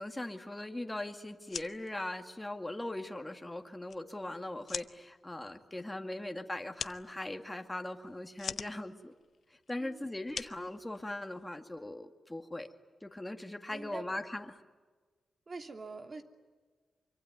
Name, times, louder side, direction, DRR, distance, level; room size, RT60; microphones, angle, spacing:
voice 1, 0.0-9.1 9.7-12.7 13.0-14.6, left 1 dB, 15° left, 5 dB, 2.1 m, -40 dB
sound 1, 1.3-11.5, left 6 dB, 65° left, 0.9 m, -46 dB
voice 2, 13.7-14.1 15.5-16.2, right 3 dB, 45° right, 5 dB, 2.9 m, -44 dB
26.0 x 24.5 x 9.5 m, 1.4 s
cardioid pair, 95°, 0 cm